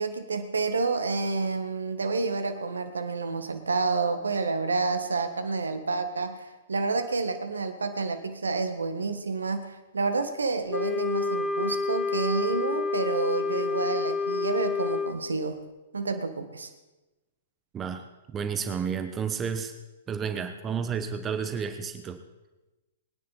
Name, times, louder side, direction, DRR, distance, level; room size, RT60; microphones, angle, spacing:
voice 1, 0.0-15.6 15.9-16.7, right 4 dB, 80° right, 9 dB, 1.5 m, -29 dB
Wind instrument woodwind instrument, 10.7-15.2, left 4 dB, 20° left, 0.9 m, -28 dB
voice 2, 18.3-19.7 20.1-22.2, right 6 dB, 20° right, 8 dB, 1.1 m, -31 dB
22.5 x 10.0 x 4.2 m, 1.1 s
figure-of-eight pair, 115°, 0 cm